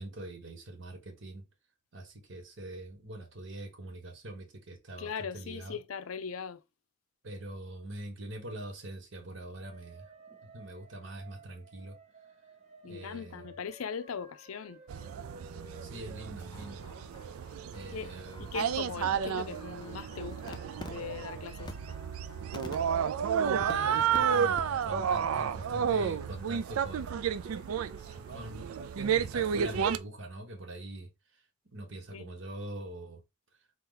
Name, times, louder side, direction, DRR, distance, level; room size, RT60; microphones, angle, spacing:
voice 1, 0.0-1.4 1.9-5.8 7.2-10.1 10.4-12.0 12.8-13.4 15.8-16.9 17.7-18.5 23.4-27.3 28.2-28.7 28.9-31.1 31.6-33.2, right 1 dB, 60° right, 1.0 m, -43 dB
voice 2, 5.0-6.6 12.8-14.8 17.9-21.7 32.1-32.3, left 6 dB, 85° left, 0.5 m, -40 dB
sound 1, 9.7-29.0, right 2 dB, 30° right, 0.7 m, -55 dB
sound 2, 14.9-30.0, right 7 dB, 90° right, 0.4 m, -32 dB
sound 3, 16.4-24.2 24.6-24.7 24.9-25.2 25.6-28.4, left 2 dB, 20° left, 0.4 m, -51 dB
3.9 x 2.8 x 3.7 m
head